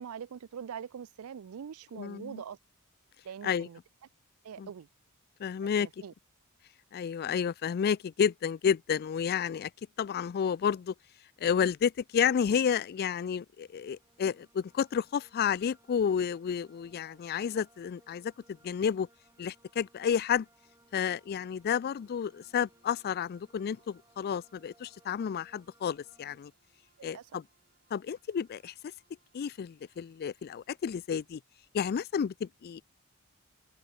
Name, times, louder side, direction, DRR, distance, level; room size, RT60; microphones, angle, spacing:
voice 1, 0.0-2.6 3.2-3.8 4.4-4.9 5.8-6.1 27.0-27.2, right 7 dB, 75° right, 0.4 m, -43 dB
voice 2, 1.9-2.4 3.4-3.7 4.6-4.7 5.4-5.9 6.9-9.7 10.0-10.9 11.4-19.1 19.4-20.5 20.9-26.5 27.0-27.4 27.9-28.9 29.3-31.4 31.7-32.8, left 7 dB, 45° left, 0.3 m, -31 dB
sound 1, 13.5-26.4, right 1 dB, 15° right, 5.5 m, -66 dB
sound 2, 21.5-31.3, right 4 dB, 45° right, 5.4 m, -74 dB
open air
head